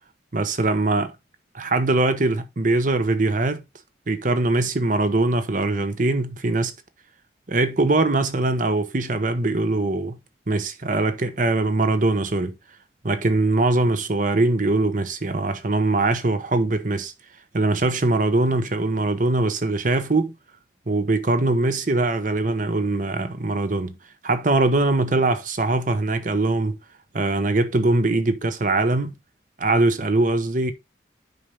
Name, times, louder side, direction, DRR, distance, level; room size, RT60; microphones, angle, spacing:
voice 1, 0.3-1.1 1.5-3.6 4.1-6.7 7.5-10.2 10.5-12.5 13.0-17.1 17.5-20.3 20.9-23.9 24.2-26.8 27.1-29.1 29.6-30.7, right 2 dB, 45° right, 0.9 m, -22 dB
8.2 x 5.6 x 3.5 m
head